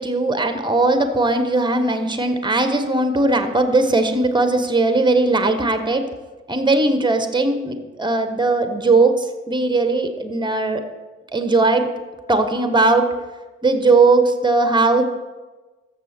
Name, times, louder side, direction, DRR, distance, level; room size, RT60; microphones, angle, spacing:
voice 1, 0.0-6.0 6.5-10.8 11.3-11.9 12.3-13.1 13.6-15.0, right 3 dB, 10° right, 8 dB, 1.3 m, -18 dB
13.5 x 6.4 x 4.5 m, 1.2 s
figure-of-eight pair, 40°, 36 cm